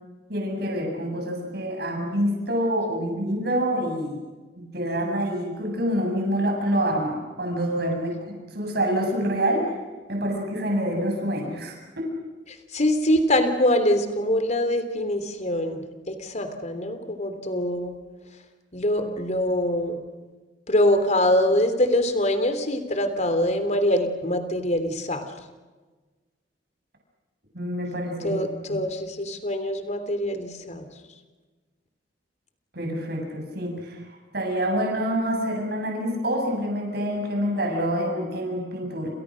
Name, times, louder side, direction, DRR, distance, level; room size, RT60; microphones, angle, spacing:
voice 1, 0.3-4.2 4.6-8.2 8.5-9.7 10.1-12.1 27.5-28.3 28.7-28.8 32.7-34.0 34.3-39.1, equal, 60° right, 2 dB, 7.7 m, -26 dB
voice 2, 12.7-18.0 18.7-20.0 20.7-25.2 28.2-30.9, left 1 dB, 40° left, 8 dB, 3.4 m, -24 dB
29.0 x 29.0 x 6.5 m, 1.3 s
head